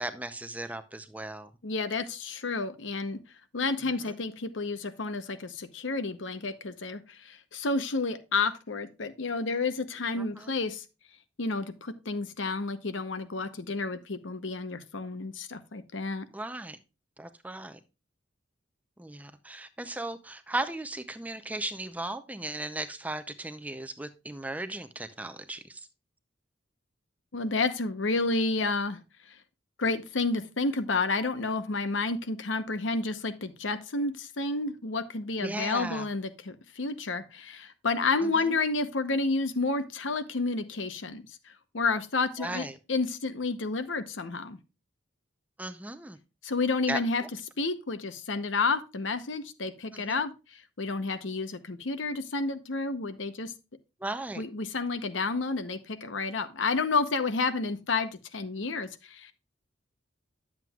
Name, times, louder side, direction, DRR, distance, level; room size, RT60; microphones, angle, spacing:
voice 1, 0.0-1.5 4.0-4.1 10.2-10.6 16.3-16.8 17.2-17.8 19.0-25.9 35.4-36.1 38.2-38.5 42.4-42.8 45.6-46.2 46.9-47.0 49.9-50.2 54.0-54.5, right 2 dB, 10° right, 0.5 m, -36 dB
voice 2, 1.6-3.2 3.5-10.8 11.4-16.3 27.3-29.0 29.3-29.4 29.8-44.6 46.4-47.2 47.6-53.5 54.4-59.3, left 3 dB, 75° left, 0.9 m, -30 dB
11.0 x 7.5 x 2.3 m
head